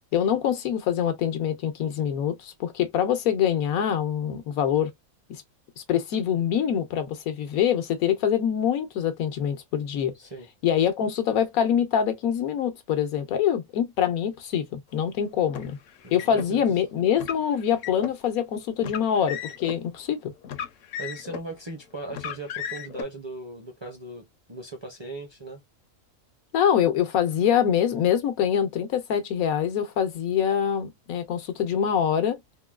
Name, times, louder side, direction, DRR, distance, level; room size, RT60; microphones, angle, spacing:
voice 1, 0.1-4.9 5.3-5.4 5.8-10.1 10.6-15.8 16.1-20.3 26.5-32.4, left 9 dB, 85° left, 1.2 m, -25 dB
Car, 15.5-16.5 17.1-18.2 18.8-19.8 20.4-21.5 22.1-23.0, left 8 dB, 70° left, 0.9 m, -35 dB
voice 2, 16.0-16.6 21.0-25.6, right 2 dB, 30° right, 0.5 m, -38 dB
3.7 x 2.2 x 2.3 m
omnidirectional pair, 1.4 m